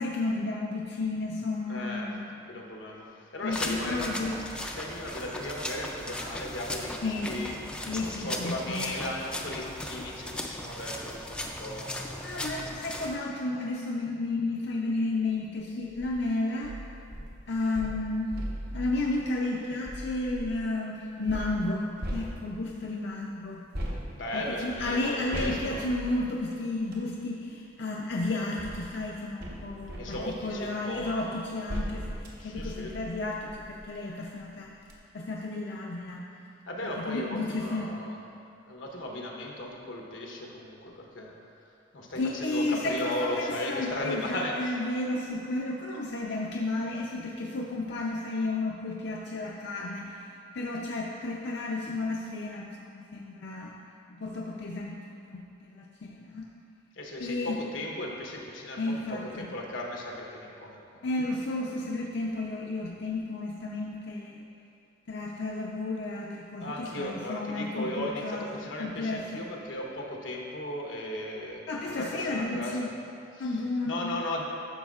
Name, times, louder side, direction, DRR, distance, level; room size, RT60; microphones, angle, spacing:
voice 1, 0.0-2.3 3.4-4.3 7.0-7.3 7.9-9.0 12.2-16.7 17.5-18.3 18.7-21.9 22.1-23.6 24.3-34.7 35.1-36.2 36.8-37.9 42.2-50.1 50.5-53.7 54.1-56.4 57.2-57.5 58.8-59.5 61.0-64.4 65.1-68.4 68.8-69.4 71.7-72.9 73.4-74.1, left 2 dB, 65° left, -2 dB, 0.5 m, -32 dB
voice 2, 1.7-2.1 2.5-4.3 4.6-7.6 8.0-12.0 24.2-25.8 30.0-31.4 32.4-33.0 36.7-38.2 38.7-41.3 41.9-44.8 57.0-60.8 66.6-72.9 73.3-73.6 73.8-74.4, left 1 dB, 90° left, -1 dB, 1.0 m, -36 dB
sound 1, 3.5-13.2, left 1 dB, 5° left, 0.4 m, -37 dB
sound 2, 15.8-16.2 16.6-20.7 21.3-22.8 23.7-27.1 28.0-34.0 34.4-34.5 34.8-35.0, equal, 55° right, 1.0 m, -39 dB
12.0 x 6.2 x 2.4 m, 2.6 s
head